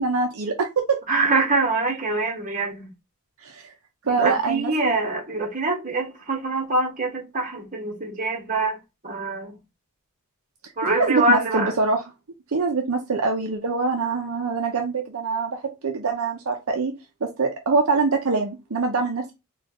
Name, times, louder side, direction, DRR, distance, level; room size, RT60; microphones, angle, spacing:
voice 1, 0.0-1.0 3.4-3.7 4.1-5.0 11.0-12.1 12.5-16.9 17.2-19.3, right 4 dB, 65° right, 0.6 m, -24 dB
voice 2, 1.1-2.9 4.2-8.8 9.0-9.6 10.8-11.7, right 2 dB, 35° right, 1.3 m, -24 dB
4.2 x 2.4 x 2.9 m
head